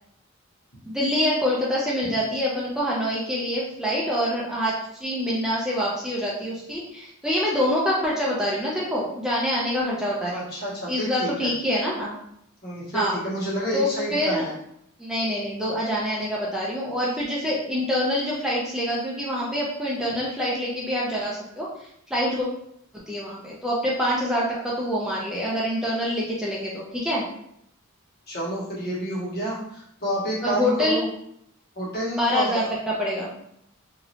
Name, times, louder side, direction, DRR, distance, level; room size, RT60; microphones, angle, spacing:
voice 1, 0.9-10.5 10.9-12.2 12.9-13.2 13.7-14.5 15.0-22.5 22.9-27.2 30.4-31.0 32.1-33.3, equal, 5° right, -6 dB, 0.4 m, -26 dB
voice 2, 10.3-11.5 12.6-14.5 28.3-31.1 31.7-32.7, right 1 dB, 50° left, -7 dB, 1.2 m, -29 dB
3.0 x 2.7 x 2.7 m, 0.73 s
head